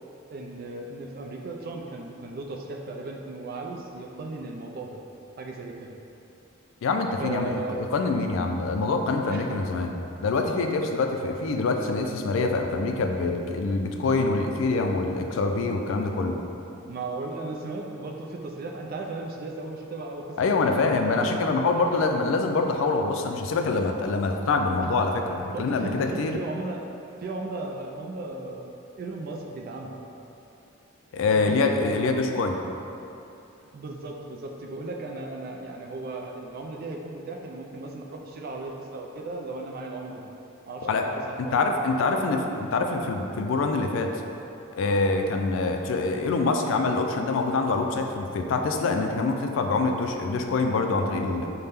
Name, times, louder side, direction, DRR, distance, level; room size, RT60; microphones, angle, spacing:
voice 1, 0.3-5.0 5.4-6.0 7.2-7.8 9.3-9.5 16.8-20.4 20.6-21.3 21.9-22.0 24.8-24.9 25.5-26.9 27.2-28.7 29.0-30.0 31.4-31.8 33.7-40.3 40.7-41.1 41.4-41.8 42.1-42.4, right 2 dB, 45° right, 1 dB, 0.3 m, -36 dB
voice 2, 6.8-9.9 10.2-16.4 20.4-26.4 31.1-32.5 40.8-41.1 41.5-44.2 44.7-51.5, left 3 dB, 70° left, 4 dB, 0.3 m, -25 dB
5.6 x 2.1 x 3.4 m, 2.8 s
head